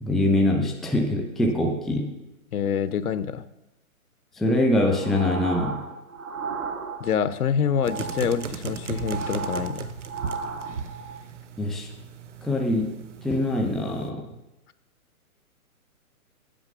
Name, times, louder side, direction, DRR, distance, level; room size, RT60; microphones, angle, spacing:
voice 1, 0.0-2.1 4.3-5.8 11.6-11.9 12.4-12.9 13.2-14.3, left 1 dB, ahead, 2 dB, 0.3 m, -23 dB
voice 2, 2.5-3.4 7.0-9.9, left 7 dB, 85° left, 14 dB, 0.8 m, -26 dB
sound 1, 4.7-7.4 7.7-11.2, right 4 dB, 70° right, 2.5 m, -35 dB
sound 2, 7.8-14.1, right 5 dB, 55° right, 0.8 m, -36 dB
8.8 x 5.8 x 6.7 m, 0.95 s
hypercardioid pair, 175°, 43 cm